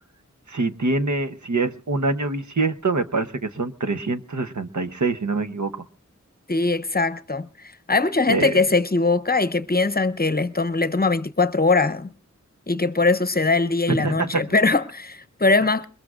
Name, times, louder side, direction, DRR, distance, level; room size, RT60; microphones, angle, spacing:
voice 1, 0.5-5.7 8.3-8.6 13.9-14.5, right 3 dB, 75° right, 1.0 m, -25 dB
voice 2, 6.5-7.5 7.9-12.1 12.7-15.9, left 3 dB, 30° left, 0.8 m, -21 dB
22.5 x 21.0 x 2.5 m
wide cardioid pair, 45°, 30 cm